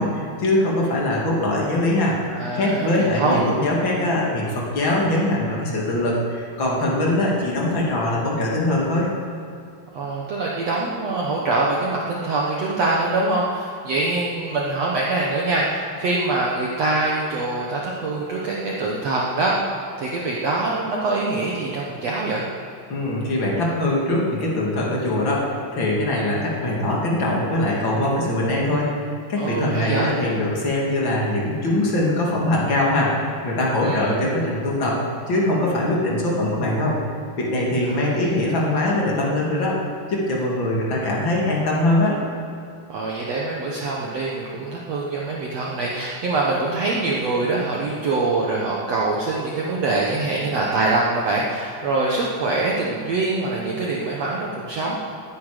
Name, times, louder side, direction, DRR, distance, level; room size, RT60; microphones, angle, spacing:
voice 1, 0.0-2.2 2.5-9.1 22.9-35.0 35.3-37.0 37.4-39.8 40.1-42.2, left 1 dB, 35° left, -3 dB, 2.5 m, -22 dB
voice 2, 2.3-3.4 9.9-19.6 20.0-22.5 29.4-30.1 33.8-34.1 37.8-38.4 42.9-55.0, right 2 dB, 90° right, -3 dB, 1.4 m, -24 dB
19.5 x 9.8 x 5.1 m, 2.5 s
omnidirectional pair, 4.9 m